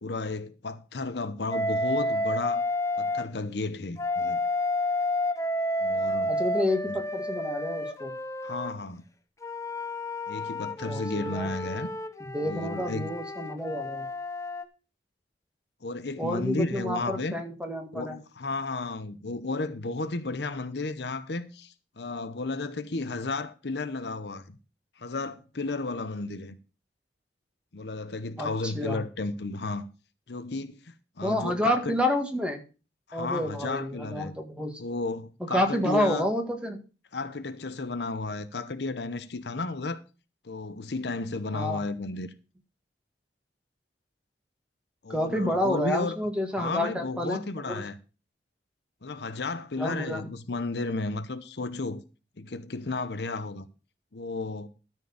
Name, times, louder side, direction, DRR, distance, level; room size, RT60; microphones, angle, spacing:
voice 1, 0.0-2.6 3.0-4.4 5.8-6.4 6.9-7.0 8.4-9.0 10.3-11.9 12.4-13.1 15.8-17.3 17.9-24.6 25.0-26.6 27.7-29.9 30.3-32.0 33.1-34.3 34.8-36.3 37.1-40.0 40.4-42.3 45.0-46.2 46.6-47.9 49.0-52.0 52.4-53.7 54.1-54.7, left 3 dB, 65° left, 0.8 m, -33 dB
Wind instrument woodwind instrument, 1.5-3.3 4.0-8.7 9.4-14.6, left 1 dB, 20° left, 0.8 m, -30 dB
voice 2, 6.3-8.1 10.9-11.5 12.2-14.1 16.2-18.2 28.4-29.0 31.2-32.6 33.1-34.8 35.5-36.8 41.5-41.8 45.1-47.8 49.8-50.2, left 1 dB, 5° right, 1.7 m, -29 dB
13.0 x 4.6 x 7.0 m
head